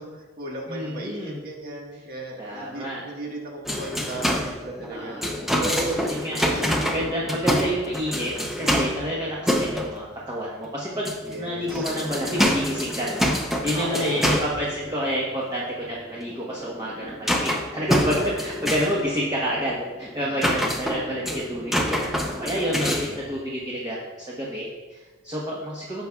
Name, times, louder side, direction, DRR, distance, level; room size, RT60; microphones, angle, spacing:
voice 1, 0.0-6.1 6.4-6.8 7.3-7.5 11.3-11.9 13.7-14.5 20.2-20.7, right 1 dB, 45° right, -1 dB, 1.6 m, -35 dB
voice 2, 0.7-1.4 2.4-3.0 4.9-5.3 6.1-6.6 6.9-26.1, equal, 20° right, -5 dB, 1.1 m, -29 dB
sound 1, 3.6-10.7 10.9-23.4, equal, ahead, 0.7 m, -27 dB
14.5 x 5.9 x 2.4 m, 1.3 s
head